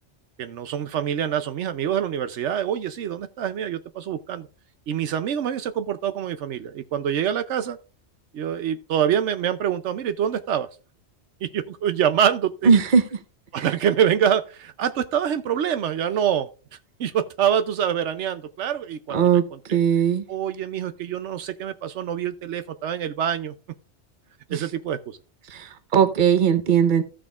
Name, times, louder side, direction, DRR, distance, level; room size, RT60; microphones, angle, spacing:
voice 1, 0.4-4.5 4.9-7.8 8.3-10.7 11.4-12.7 13.5-16.5 17.0-19.2 19.7-19.8 20.3-23.5 24.5-25.2, right 9 dB, 80° right, 1.0 m, -25 dB
voice 2, 12.6-13.2 13.6-13.7 19.1-19.4 19.7-20.2 24.5-24.7 25.5-27.0, right 7 dB, 45° right, 0.9 m, -19 dB
15.0 x 6.2 x 2.4 m
omnidirectional pair, 1.2 m